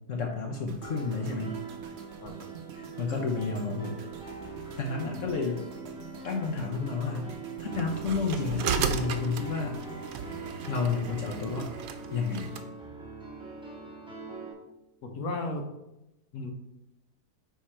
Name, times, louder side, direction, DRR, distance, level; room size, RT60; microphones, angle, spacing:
voice 1, 0.1-1.6 2.7-4.0 4.8-5.7 6.2-7.3 7.6-9.8 10.7-11.7 12.1-12.5, left 4 dB, 60° left, 1 dB, 1.0 m, -31 dB
sound 1, 0.7-12.9 13.1-13.4, right 7 dB, 55° right, 0.8 m, -47 dB
Piano, 0.8-14.5, right 3 dB, 5° right, 1.5 m, -42 dB
sound 2, 7.7-12.7, right 6 dB, 75° right, 1.1 m, -35 dB
voice 2, 15.0-15.6 16.3-16.5, left 2 dB, 75° left, 4 dB, 1.4 m, -35 dB
9.7 x 3.5 x 4.3 m, 0.95 s
omnidirectional pair, 1.6 m